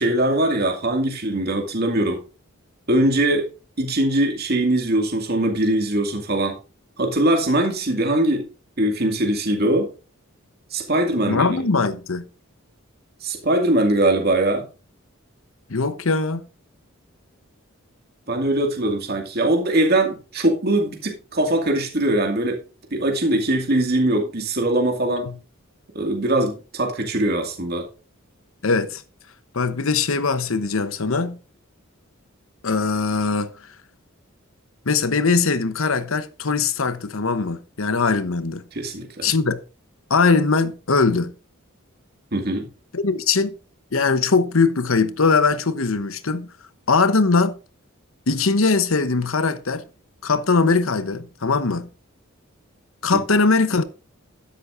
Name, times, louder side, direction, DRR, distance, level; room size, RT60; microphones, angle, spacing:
voice 1, 0.0-2.2 2.9-3.5 3.8-6.6 7.0-8.5 8.8-9.9 10.7-11.7 13.2-14.6 18.3-22.6 22.9-25.3 25.9-27.9 38.7-39.3 42.3-42.7, right 1 dB, 50° right, 2.2 m, -21 dB
voice 2, 11.3-12.3 15.7-16.5 25.3-25.4 28.6-29.0 29.5-31.4 32.6-33.5 34.9-38.6 39.2-39.6 40.1-41.3 42.9-43.6 43.9-46.5 46.9-47.6 48.3-49.8 50.2-51.9 53.0-53.8, left 4 dB, 75° left, 1.0 m, -21 dB
12.5 x 10.5 x 2.6 m
head